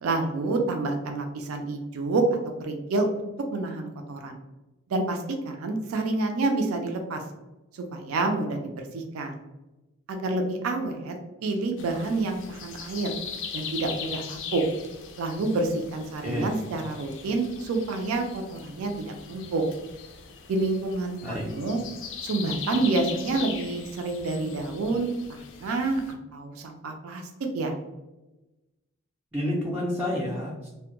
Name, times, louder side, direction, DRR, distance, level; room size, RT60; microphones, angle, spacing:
voice 1, 0.0-2.2 2.6-4.4 4.9-7.2 7.8-9.3 10.1-11.1 11.4-13.1 13.5-14.6 15.2-19.6 20.5-21.8 22.2-27.3 27.5-27.7, right 2 dB, 75° right, 4 dB, 0.4 m, -28 dB
sound 1, 11.8-26.1, left 6 dB, 60° left, 0.3 m, -40 dB
voice 2, 16.2-16.5 21.2-21.5 29.3-30.7, left 1 dB, 10° right, -5 dB, 0.4 m, -29 dB
2.1 x 2.1 x 2.9 m, 1.0 s
head